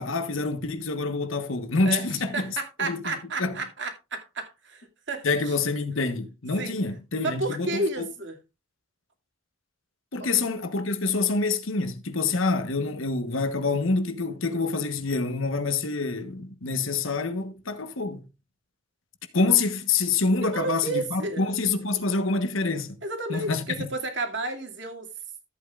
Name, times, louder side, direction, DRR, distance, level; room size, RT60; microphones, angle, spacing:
voice 1, 0.0-2.3 2.8-3.1 3.4-3.5 5.2-8.1 10.1-18.3 19.3-23.0 23.3-23.9, left 3 dB, 75° left, 1.2 m, -26 dB
voice 2, 1.8-5.6 6.6-6.7 7.2-8.4 10.2-10.3 20.4-21.4 23.0-25.1, right 2 dB, 60° right, 2.4 m, -32 dB
13.5 x 8.5 x 2.4 m
head